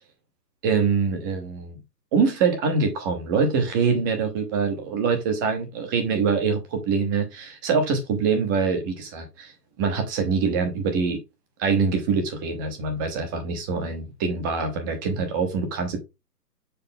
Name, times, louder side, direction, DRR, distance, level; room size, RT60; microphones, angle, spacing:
voice 1, 0.6-1.8 2.1-9.5 9.8-11.2 11.6-16.0, right 5 dB, 15° right, 0.9 m, -24 dB
6.9 x 4.8 x 3.7 m
hypercardioid pair, 155°, 49 cm